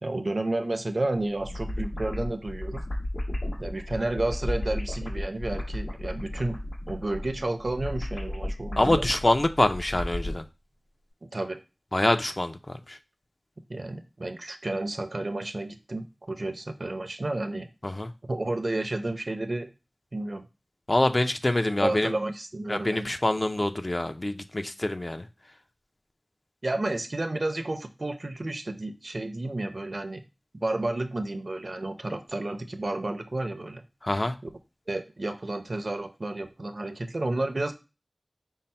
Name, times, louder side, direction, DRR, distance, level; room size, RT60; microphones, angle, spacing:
voice 1, 0.0-2.9 3.6-9.1 11.2-11.6 13.7-17.7 18.2-19.7 20.1-20.5 21.8-23.1 26.6-30.2 30.6-33.8 34.9-37.7, right 2 dB, 60° right, 8 dB, 0.5 m, -31 dB
sound 1, 1.1-10.4, left 1 dB, 85° left, 1.7 m, -34 dB
voice 2, 8.8-10.4 11.9-13.0 17.8-18.1 20.9-22.1 22.7-25.3 34.0-34.3, left 1 dB, 40° left, 8 dB, 0.4 m, -25 dB
5.4 x 2.0 x 4.2 m, 0.29 s
wide cardioid pair, 55°, 0 cm